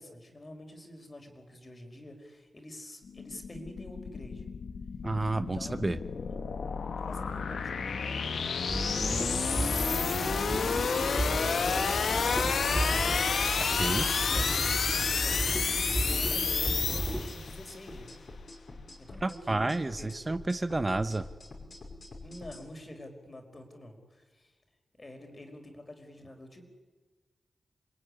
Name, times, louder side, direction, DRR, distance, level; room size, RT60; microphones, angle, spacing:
voice 1, 0.0-4.5 5.4-6.3 7.0-9.3 9.8-12.8 14.3-18.2 19.0-20.1 22.2-24.5 25.0-26.7, left 1 dB, 35° left, 5 dB, 5.2 m, -47 dB
sound 1, 3.1-17.6, left 5 dB, 85° left, 1.5 m, -30 dB
voice 2, 5.0-6.0 13.6-14.1 19.2-21.3, right 2 dB, 30° right, 11 dB, 0.9 m, -30 dB
sound 2, 8.7-17.3, right 1 dB, ahead, 4.2 m, -33 dB
sound 3, 16.3-22.6, left 2 dB, 60° left, 6.0 m, -47 dB
28.0 x 20.0 x 9.9 m, 1.3 s
cardioid pair, 65°, 0 cm